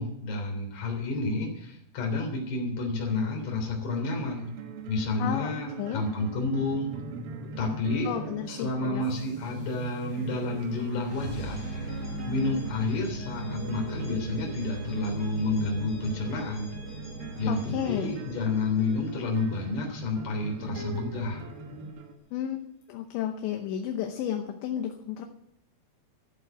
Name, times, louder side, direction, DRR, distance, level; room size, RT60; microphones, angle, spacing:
voice 1, 0.0-4.5 4.9-7.0 7.6-8.1 8.5-11.6 12.2-16.7 17.4-21.4, left 3 dB, 45° left, 1 dB, 4.4 m, -30 dB
sound 1, 3.1-22.2, right 8 dB, 80° right, 4.1 m, -44 dB
voice 2, 5.2-5.5 5.8-6.0 8.1-9.0 17.5-18.1 22.3-22.6 22.9-25.3, left 10 dB, 75° left, 5 dB, 3.0 m, -32 dB
sound 2, 6.0-21.9, right 2 dB, 60° right, 3.1 m, -44 dB
sound 3, 9.0-19.8, right 1 dB, 20° left, 3.8 m, -40 dB
14.0 x 7.7 x 9.1 m, 0.78 s
omnidirectional pair, 5.8 m